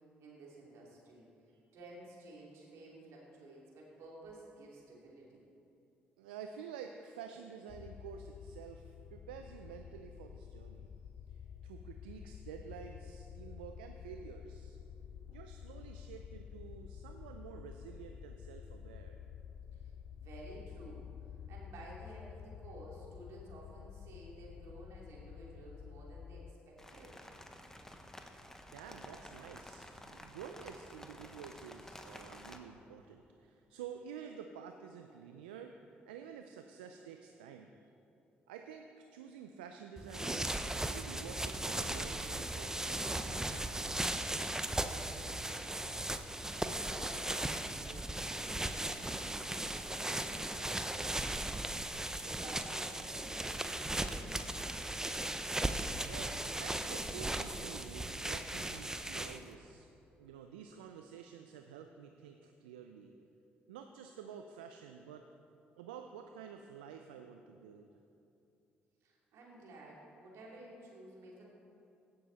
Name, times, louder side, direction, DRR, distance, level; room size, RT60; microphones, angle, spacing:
voice 1, 0.2-1.3 1.7-5.4 19.7-27.2 44.6-46.1 46.6-49.5 49.9-51.6 52.2-54.6 69.0-71.5, right 1 dB, 70° right, -4 dB, 2.9 m, -53 dB
voice 2, 6.2-10.9 11.3-14.8 15.3-19.2 28.7-37.9 38.5-44.0 56.1-59.9 60.2-63.1 63.7-65.3 65.8-67.9, right 7 dB, 90° right, 5 dB, 0.4 m, -50 dB
sound 1, 7.7-26.5, left 8 dB, 55° left, 0.4 m, -50 dB
sound 2, 26.8-32.6, left 1 dB, 10° left, 1.2 m, -52 dB
sound 3, 40.0-59.5, right 1 dB, 10° right, 0.7 m, -37 dB
16.5 x 6.9 x 4.1 m, 2.7 s
hypercardioid pair, 50°, 5 cm